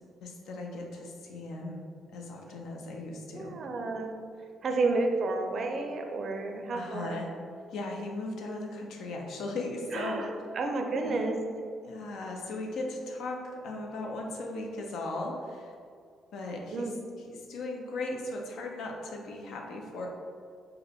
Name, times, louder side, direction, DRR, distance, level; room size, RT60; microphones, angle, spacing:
voice 1, 0.2-1.8 2.1-3.6 6.7-7.3 7.7-10.2 11.0-11.2 11.8-15.7 16.3-16.9 17.3-20.1, left 2 dB, 80° left, 1 dB, 0.5 m, -37 dB
voice 2, 3.3-4.1 4.6-7.2 9.9-10.3 10.5-11.4 16.7-16.9, right 3 dB, 55° right, 4 dB, 0.4 m, -31 dB
4.5 x 2.1 x 3.4 m, 2.2 s
cardioid pair, 90°, 0 cm